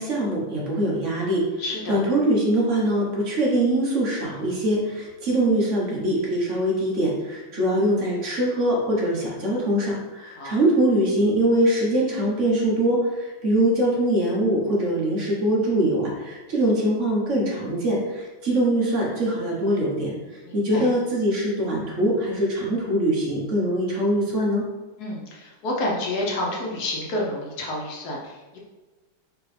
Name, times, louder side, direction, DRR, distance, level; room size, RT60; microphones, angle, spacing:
voice 1, 0.0-1.5 1.9-20.1 20.5-24.6, right 1 dB, 45° right, -4 dB, 1.1 m, -23 dB
voice 2, 1.6-2.0 10.3-10.5 20.4-20.9 25.0-28.6, left 1 dB, 60° left, -2 dB, 1.2 m, -29 dB
4.9 x 3.0 x 3.2 m, 1.2 s
omnidirectional pair, 2.2 m